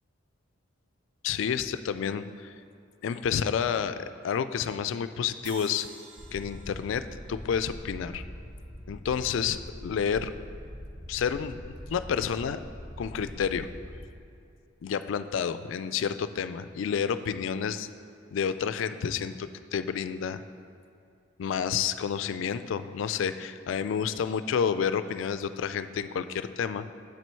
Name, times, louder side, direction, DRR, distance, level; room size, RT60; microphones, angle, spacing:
voice 1, 1.2-2.5 3.0-5.9 6.3-8.2 8.9-10.3 11.1-12.6 13.0-13.7 14.8-17.9 18.3-20.4 21.4-26.9, left 7 dB, 65° left, 12 dB, 0.3 m, -30 dB
sound 1, 5.4-8.7, right 6 dB, 60° right, 0.6 m, -51 dB
sound 2, 6.2-13.9, equal, 5° right, 1.3 m, -43 dB
7.3 x 6.1 x 4.4 m, 2.6 s
head